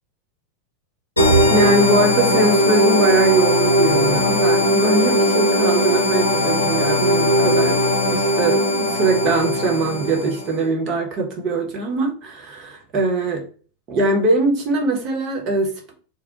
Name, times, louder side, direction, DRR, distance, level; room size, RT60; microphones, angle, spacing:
sound 1, 1.2-10.5, equal, 85° left, 0.6 m, -18 dB
voice 1, 1.5-7.8 8.1-13.5 13.9-15.9, right 2 dB, 35° right, 1 dB, 0.8 m, -21 dB
2.1 x 2.1 x 3.8 m, 0.40 s
figure-of-eight pair, 90°, 0 cm